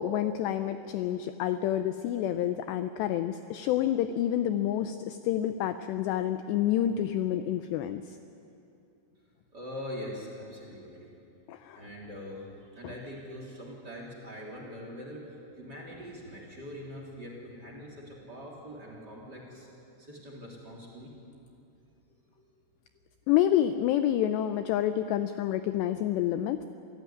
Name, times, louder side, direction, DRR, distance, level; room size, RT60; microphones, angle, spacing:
voice 1, 0.0-8.0 11.5-11.8 23.3-26.6, left 11 dB, 85° left, 10 dB, 2.4 m, -28 dB
voice 2, 9.5-11.1 11.7-12.5 12.7-19.7 20.0-21.1 22.4-22.5, equal, 25° right, -1 dB, 3.4 m, -43 dB
27.0 x 16.5 x 9.8 m, 2.7 s
omnidirectional pair, 5.7 m